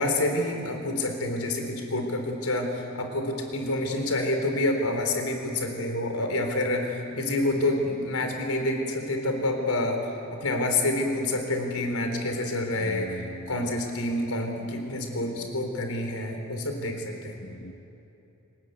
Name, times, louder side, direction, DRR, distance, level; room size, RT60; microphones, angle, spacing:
voice 1, 0.0-10.0 10.3-13.2 13.5-17.4, left 2 dB, 85° left, 4 dB, 4.1 m, -28 dB
voice 2, 12.8-13.9 17.4-17.8, left 1 dB, 50° left, 3 dB, 1.3 m, -41 dB
29.0 x 20.0 x 8.2 m, 2.9 s
head